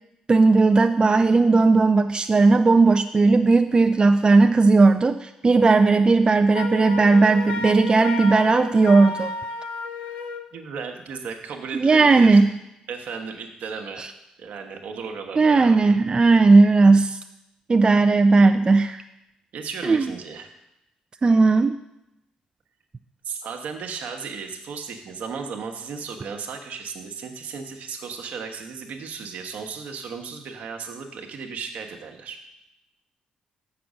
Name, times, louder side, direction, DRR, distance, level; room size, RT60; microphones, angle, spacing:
voice 1, 0.3-9.3 11.7-12.5 14.0-14.1 15.4-17.2 17.7-19.0 19.8-20.1 21.2-21.8, right 3 dB, 35° right, 7 dB, 0.4 m, -16 dB
Wind instrument woodwind instrument, 6.5-10.5, left 4 dB, 80° left, 0.6 m, -32 dB
voice 2, 10.5-12.4 12.9-14.0 14.4-15.9 19.5-20.5 23.2-32.4, right 5 dB, 70° right, 4 dB, 1.1 m, -35 dB
6.9 x 5.9 x 6.4 m, 0.86 s
supercardioid pair, 55°, 3 cm